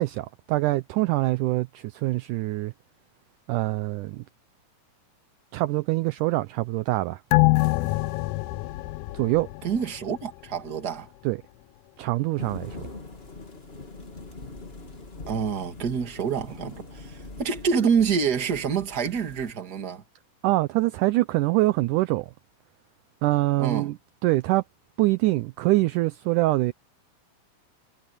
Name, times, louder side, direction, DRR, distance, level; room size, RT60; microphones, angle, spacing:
voice 1, 0.0-2.7 3.5-4.2 5.5-7.2 9.1-9.5 11.3-11.4 12.0-12.8 20.4-22.3 23.2-24.0 24.2-24.6 25.0-26.7, right 19 dB, 80° right, 2.0 m, -24 dB
sound 1, 7.3-10.2 10.6-10.7, left 22 dB, 80° left, 1.9 m, -24 dB
voice 2, 9.6-11.1 15.3-20.0 23.6-23.9, right 6 dB, 35° right, 2.2 m, -27 dB
sound 2, 12.4-19.5, left 3 dB, 20° left, 2.4 m, -42 dB
omnidirectional pair, 4.0 m